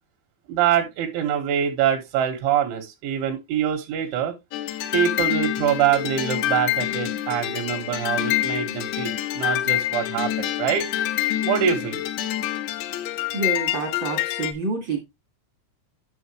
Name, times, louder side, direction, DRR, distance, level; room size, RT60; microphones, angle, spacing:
voice 1, 0.5-4.3 4.9-10.9 11.4-12.0, right 9 dB, 85° right, 3 dB, 3.9 m, -24 dB
sound 1, 4.5-14.5, left 13 dB, 85° left, 3.2 m, -26 dB
voice 2, 13.3-15.0, right 3 dB, 60° right, 2 dB, 1.2 m, -28 dB
9.6 x 6.8 x 3.1 m, 0.21 s
omnidirectional pair, 5.2 m